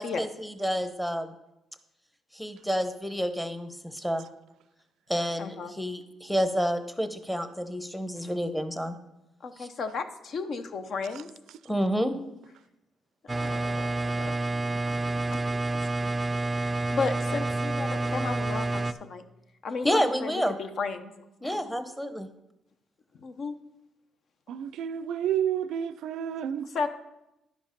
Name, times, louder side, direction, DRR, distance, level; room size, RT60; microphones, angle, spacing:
voice 1, 0.0-1.3 2.3-4.3 5.1-9.0 9.6-9.7 11.7-12.1 19.8-20.6 21.4-22.3, equal, 5° left, 0.8 m, -29 dB
voice 2, 5.4-5.7 8.2-8.3 9.4-11.3 13.2-14.4 15.1-15.4 15.9-16.1 16.5-19.2 19.6-20.3 20.6-21.1 21.4-21.6 23.2-23.5 26.6-26.9, left 4 dB, 60° left, 0.7 m, -34 dB
sound 1, 13.3-18.9, right 2 dB, 20° right, 0.4 m, -29 dB
voice 3, 24.5-26.6, right 9 dB, 80° right, 0.4 m, -30 dB
11.0 x 5.2 x 5.1 m
cardioid pair, 90°, 0 cm